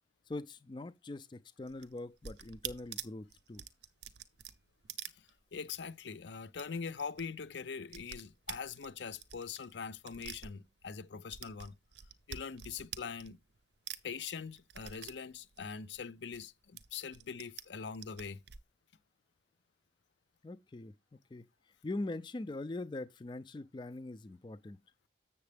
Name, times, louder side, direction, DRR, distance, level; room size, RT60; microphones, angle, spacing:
voice 1, 0.3-3.6 20.4-20.9 21.3-21.4 21.8-24.8, left 2 dB, 25° left, 0.4 m, -42 dB
sound 1, 1.6-5.8 6.1-6.2 6.5-7.2 7.5-11.0 11.3-13.6 13.9-16.4 16.8-17.6 17.9-18.6, right 9 dB, 75° right, 0.6 m, -47 dB
voice 2, 5.2-11.8 12.3-13.4 14.0-18.4, left 6 dB, 80° left, 0.5 m, -43 dB
7.4 x 6.9 x 3.3 m
head